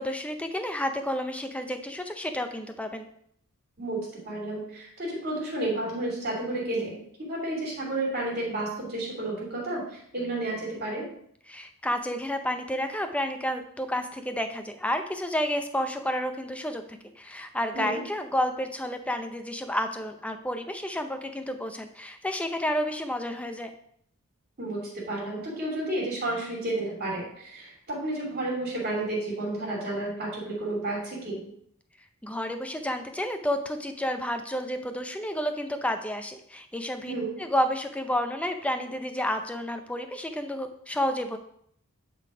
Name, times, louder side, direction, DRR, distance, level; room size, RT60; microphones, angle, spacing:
voice 1, 0.0-3.0 11.5-16.8 17.2-23.7 32.2-37.1 37.4-41.4, equal, 5° left, 7 dB, 0.6 m, -30 dB
voice 2, 3.8-11.1 17.7-18.0 24.6-31.4 37.1-37.3, right 2 dB, 45° right, -2 dB, 2.8 m, -31 dB
9.5 x 4.0 x 4.9 m, 0.67 s
head